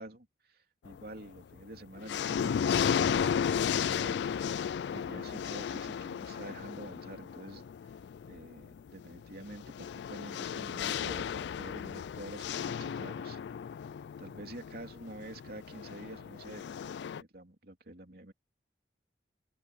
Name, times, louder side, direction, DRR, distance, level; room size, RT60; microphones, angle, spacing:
voice 1, 0.0-4.3 4.9-7.9 8.3-13.4 14.2-18.3, right 1 dB, 55° right, 3.2 m, -48 dB
sound 1, 0.8-1.4 1.8-17.2, left 7 dB, 65° left, 0.3 m, -34 dB
open air
head